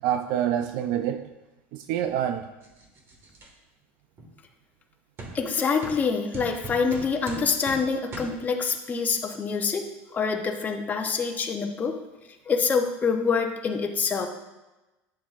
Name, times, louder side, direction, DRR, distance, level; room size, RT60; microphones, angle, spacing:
voice 1, 0.0-1.3 1.7-2.5, right 10 dB, 70° right, 8 dB, 0.4 m, -27 dB
sound 1, 2.6-3.5 4.2-4.3 5.2-5.3 5.8-6.0 6.3-7.8 8.1-8.3, right 2 dB, 40° right, 1.6 m, -39 dB
voice 2, 5.3-12.0 12.5-14.3, left 5 dB, 25° left, 3 dB, 0.8 m, -26 dB
8.7 x 7.3 x 2.5 m, 1.1 s
supercardioid pair, 120°, 7 cm